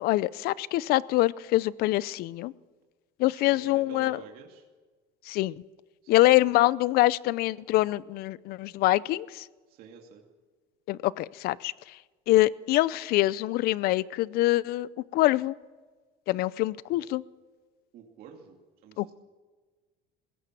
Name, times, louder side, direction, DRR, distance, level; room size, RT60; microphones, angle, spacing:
voice 1, 0.0-2.5 3.2-4.2 5.3-5.5 6.1-9.4 10.9-11.7 12.3-15.5 16.3-17.2 19.0-19.1, left 17 dB, 60° left, 20 dB, 0.6 m, -25 dB
voice 2, 3.3-4.6 6.1-6.3 9.7-10.2 17.9-19.1, right 6 dB, 55° right, 1 dB, 2.5 m, -49 dB
21.0 x 17.5 x 7.5 m, 1.4 s
cardioid pair, 135°, 18 cm